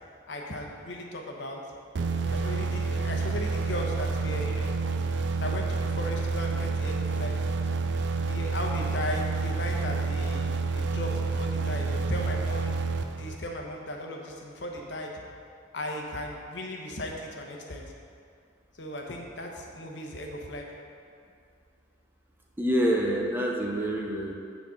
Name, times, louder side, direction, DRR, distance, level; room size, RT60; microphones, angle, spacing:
voice 1, 0.3-1.6 2.3-4.8 5.4-7.3 8.2-12.7 13.1-15.1 15.7-17.8 18.8-20.7, left 1 dB, 65° left, 1 dB, 1.0 m, -36 dB
sound 1, 1.9-13.7, right 4 dB, 65° right, 0.4 m, -29 dB
voice 2, 22.6-24.3, right 1 dB, 10° right, -1 dB, 0.6 m, -26 dB
9.0 x 4.2 x 5.8 m, 2.4 s
head